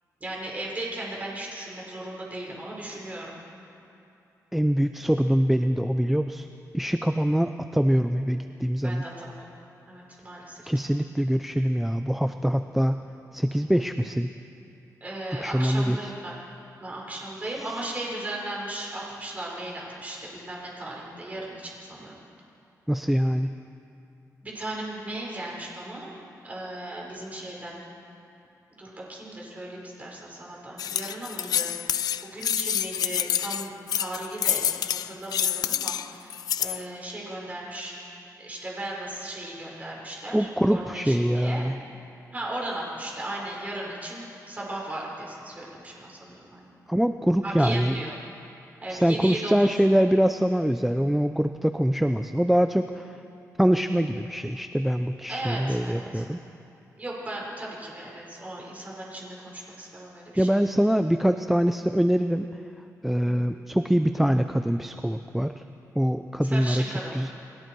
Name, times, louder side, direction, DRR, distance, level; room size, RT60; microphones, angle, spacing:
voice 1, 0.2-3.3 8.8-9.5 9.9-10.7 15.0-16.4 16.8-22.1 24.4-26.1 26.4-27.8 28.8-31.7 32.2-41.6 42.3-46.7 47.4-48.2 48.8-49.8 55.3-56.2 57.0-60.6 66.4-67.2, right 1 dB, 25° right, -3 dB, 5.0 m, -36 dB
voice 2, 4.5-6.5 6.7-9.0 10.7-13.0 13.3-14.3 15.4-16.0 17.4-18.0 22.9-23.5 40.3-41.8 46.9-48.0 48.9-53.2 53.6-56.4 60.4-62.5 63.0-65.6 66.0-66.8 67.1-67.3, equal, 5° right, 8 dB, 0.5 m, -24 dB
sound 1, 30.8-36.8, left 10 dB, 85° left, 0.5 m, -27 dB
29.5 x 20.5 x 4.7 m, 2.7 s
wide cardioid pair, 165°, 6 cm